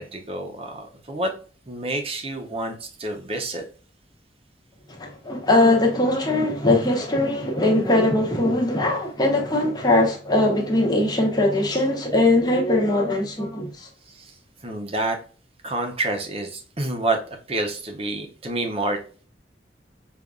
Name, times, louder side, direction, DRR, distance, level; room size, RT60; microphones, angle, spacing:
voice 1, 0.0-1.3 1.7-3.6 14.1-14.4 14.6-15.2 15.6-19.0, right 2 dB, 35° right, 0.7 m, -28 dB
voice 2, 4.9-13.9, left 2 dB, 20° left, 0.9 m, -21 dB
5.1 x 2.5 x 2.3 m
head